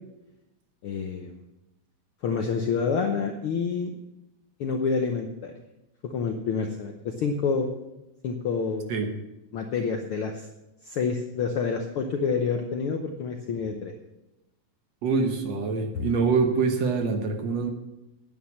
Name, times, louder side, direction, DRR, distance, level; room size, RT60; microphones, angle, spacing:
voice 1, 0.8-1.4 2.2-3.9 4.6-5.5 6.0-7.7 8.2-8.9 9.5-10.5 10.8-13.9, left 5 dB, 70° left, 4 dB, 1.3 m, -28 dB
voice 2, 15.0-17.7, right 4 dB, 65° right, 5 dB, 2.2 m, -25 dB
9.5 x 9.1 x 7.2 m, 0.96 s
omnidirectional pair, 3.5 m